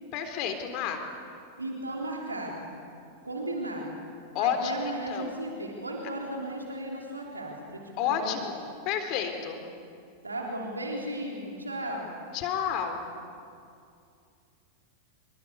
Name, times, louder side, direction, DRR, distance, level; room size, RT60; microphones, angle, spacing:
voice 1, 0.1-1.0 4.3-4.8 5.1-5.3 8.0-8.5 8.9-9.6 12.3-13.0, left 8 dB, 40° left, 6 dB, 3.8 m, -30 dB
voice 2, 1.6-2.8 3.2-4.1 4.4-8.4 10.2-12.1, right 1 dB, 80° right, -1 dB, 3.8 m, -35 dB
28.5 x 24.0 x 8.4 m, 2.4 s
figure-of-eight pair, 90°, 0 cm